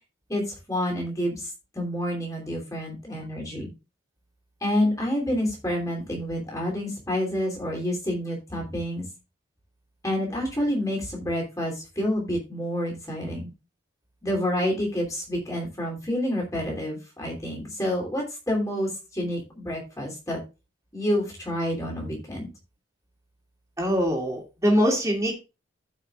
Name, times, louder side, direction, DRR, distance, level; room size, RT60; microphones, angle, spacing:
voice 1, 0.3-3.7 4.6-9.0 10.0-13.5 14.2-20.4 20.9-22.5, left 1 dB, 15° left, -1 dB, 3.1 m, -28 dB
voice 2, 23.8-25.3, equal, 15° right, -1 dB, 2.3 m, -23 dB
15.5 x 5.6 x 2.4 m, 0.28 s
head